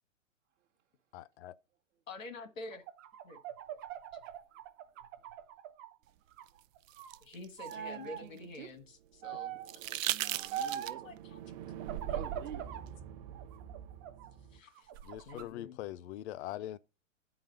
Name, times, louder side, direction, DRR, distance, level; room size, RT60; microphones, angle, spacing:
voice 1, 1.1-1.6 15.0-16.8, left 13 dB, 60° left, 0.5 m, -42 dB
voice 2, 2.1-2.8 3.2-3.4 7.2-9.6 10.0-10.1 10.7-10.8 11.0-11.4 12.1-12.2 14.5-14.9 15.3-15.8, left 2 dB, 90° left, 1.7 m, -47 dB
sound 1, 2.7-5.9 6.3-7.2 7.6-8.2 9.2-9.7 10.5-11.1 11.8-12.9 13.3-14.3 14.8-15.5, right 9 dB, 20° right, 0.3 m, -41 dB
sound 2, 6.5-8.7 9.6-11.2 12.9-13.0, right 13 dB, 85° right, 0.5 m, -38 dB
sound 3, 9.0-14.6, right 9 dB, 35° right, 0.7 m, -48 dB
voice 3, 10.0-11.2 12.1-12.8, right 10 dB, 65° right, 0.9 m, -47 dB
9.8 x 4.0 x 5.2 m
hypercardioid pair, 135°, 38 cm